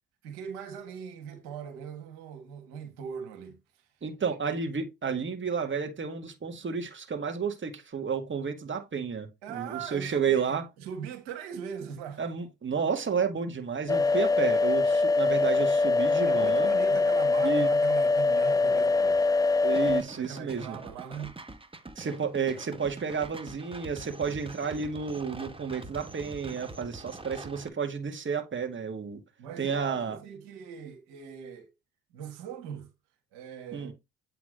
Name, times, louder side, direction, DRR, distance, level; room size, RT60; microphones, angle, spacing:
voice 1, 0.2-3.6 9.4-12.2 16.3-19.2 19.5-19.6 20.2-21.3 29.4-31.7 32.1-32.9 33.3-33.9, right 7 dB, 85° right, 1.6 m, -40 dB
voice 2, 4.0-10.7 12.2-16.7 17.4-17.7 19.6-20.8 22.0-29.2 29.6-30.2 33.7-33.9, right 6 dB, 35° right, 2.1 m, -31 dB
sound 1, 13.9-20.0, left 3 dB, 10° left, 0.3 m, -23 dB
sound 2, 19.7-27.7, right 2 dB, 15° right, 1.3 m, -45 dB
8.2 x 3.5 x 5.0 m
hypercardioid pair, 60°, 35 cm